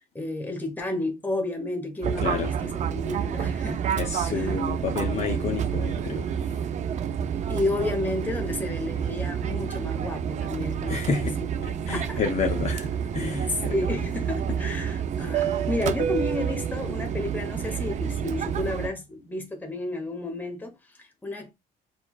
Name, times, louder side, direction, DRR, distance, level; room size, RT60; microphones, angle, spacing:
voice 1, 0.0-3.8 4.3-4.5 7.5-11.3 11.9-12.2 13.5-21.5, left 2 dB, 10° left, 1.0 m, -31 dB
Fixed-wing aircraft airplane, 2.0-18.9, right 8 dB, 45° right, 0.4 m, -29 dB
voice 2, 2.2-2.5 4.0-6.6 10.9-11.3 11.6-13.8 15.5-15.6, left 5 dB, 40° left, 0.7 m, -30 dB
4.4 x 2.3 x 2.3 m
cardioid pair, 110°, 17 cm